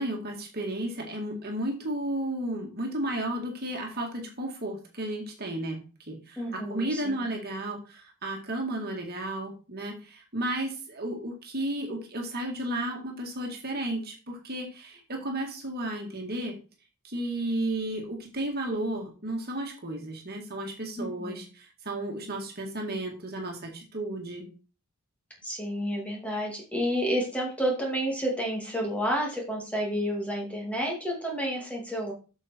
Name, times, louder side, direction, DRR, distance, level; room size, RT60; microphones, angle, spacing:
voice 1, 0.0-16.5 17.0-24.5, right 1 dB, 45° right, 1 dB, 2.1 m, -33 dB
voice 2, 6.4-7.3 21.0-21.4 25.4-32.1, equal, 5° left, -1 dB, 2.6 m, -30 dB
8.2 x 6.5 x 4.5 m, 0.35 s
head